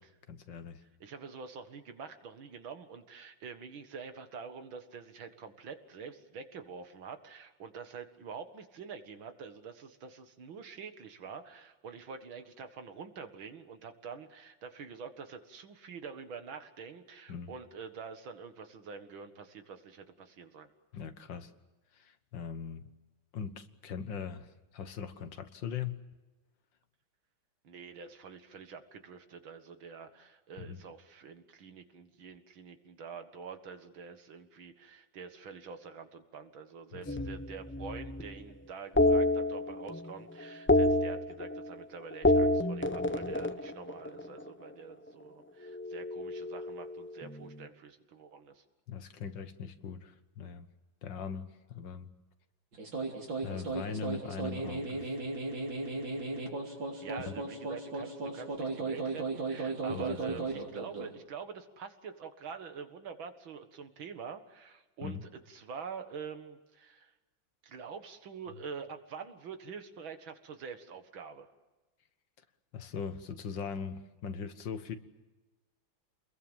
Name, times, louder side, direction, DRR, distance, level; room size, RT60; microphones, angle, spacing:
voice 1, 0.3-0.8 17.3-17.5 20.9-21.5 21.9-22.9 23.3-26.0 30.6-30.8 36.9-37.2 48.9-50.7 51.0-52.1 53.4-55.1 59.9-60.5 65.0-65.2 72.7-75.0, left 6 dB, 70° left, 10 dB, 2.0 m, -40 dB
voice 2, 1.0-20.7 27.6-48.6 57.0-65.2 65.5-67.1 67.6-71.5, right 6 dB, 90° right, 8 dB, 2.5 m, -46 dB
sound 1, 37.1-38.3 39.0-40.1 40.4-41.8 42.1-44.5 45.7-47.4, left 1 dB, 10° left, 0.5 m, -29 dB
sound 2, 52.7-61.2, right 3 dB, 70° right, 4.2 m, -36 dB
28.5 x 21.5 x 7.4 m, 1.1 s
omnidirectional pair, 2.1 m